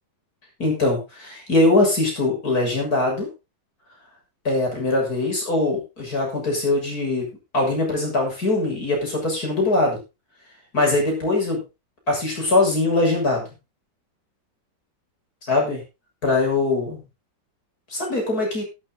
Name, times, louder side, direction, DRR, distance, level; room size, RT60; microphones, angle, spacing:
voice 1, 0.6-3.3 4.5-10.0 10.7-11.6 12.1-13.5 15.5-15.8 16.2-17.0 17.9-18.6, left 2 dB, 50° left, 0 dB, 7.2 m, -22 dB
12.5 x 12.0 x 3.9 m, 0.27 s
omnidirectional pair, 2.0 m